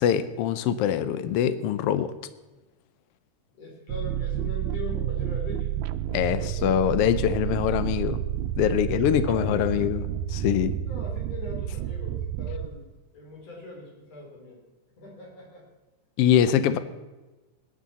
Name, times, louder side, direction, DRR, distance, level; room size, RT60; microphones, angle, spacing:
voice 1, 0.0-2.1 6.1-8.2 8.6-10.0 10.3-10.7 16.2-16.8, left 10 dB, 75° left, 13 dB, 1.4 m, -23 dB
voice 2, 3.6-5.7 6.1-6.7 8.8-9.9 10.8-12.9 13.1-14.6 15.0-15.6, left 3 dB, 60° left, 0 dB, 4.4 m, -41 dB
sound 1, 3.9-12.7, right 11 dB, 80° right, 1.9 m, -30 dB
18.0 x 11.5 x 4.2 m, 1.1 s
omnidirectional pair, 3.4 m